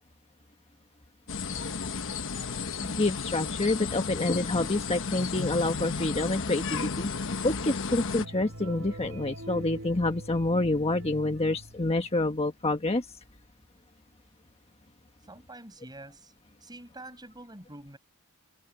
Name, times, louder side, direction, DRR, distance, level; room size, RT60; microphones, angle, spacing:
sound 1, 1.3-8.2, left 5 dB, 60° left, 1.1 m, -33 dB
voice 1, 2.8-13.1, left 2 dB, 30° left, 1.4 m, -28 dB
sound 2, 8.2-12.3, right 1 dB, 60° right, 2.2 m, -43 dB
voice 2, 15.3-16.3 16.6-18.0, right 2 dB, 20° right, 7.8 m, -46 dB
head